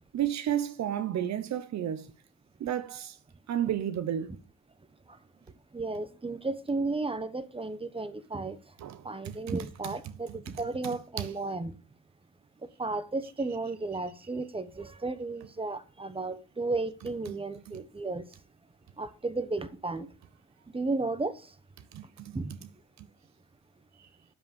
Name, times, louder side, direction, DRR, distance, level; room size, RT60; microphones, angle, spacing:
voice 1, 0.1-2.1 2.6-3.1 3.5-4.3 8.8-9.4 9.8-10.1 11.2-11.3 17.7-17.8 21.9-22.4, right 10 dB, 65° right, 0.9 m, -32 dB
voice 2, 5.7-8.6 9.0-11.8 12.6-18.2 19.0-20.1 20.7-21.5 22.3-22.6, right 3 dB, 20° right, 1.1 m, -34 dB
10.0 x 7.4 x 5.3 m
cardioid pair, 90°, 30 cm